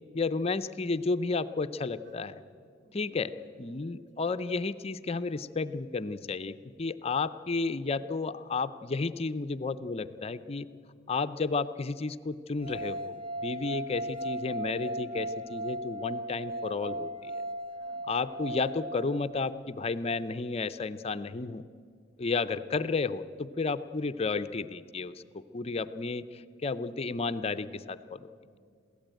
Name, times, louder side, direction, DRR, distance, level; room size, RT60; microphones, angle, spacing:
voice 1, 0.1-2.3 2.9-3.3 3.6-10.7 11.1-17.4 18.1-21.6 22.2-26.2 26.6-28.3, left 4 dB, 30° left, 12 dB, 0.5 m, -32 dB
voice 2, 2.8-3.3 4.0-4.3 13.7-14.0 17.7-18.1 18.4-18.7 22.4-22.6 24.0-24.1 25.6-26.0 28.4-28.6, right 1 dB, 75° right, 3 dB, 4.1 m, -60 dB
sound 1, 12.6-19.7, right 1 dB, 30° right, 0.7 m, -37 dB
22.5 x 16.0 x 9.1 m, 2.2 s
head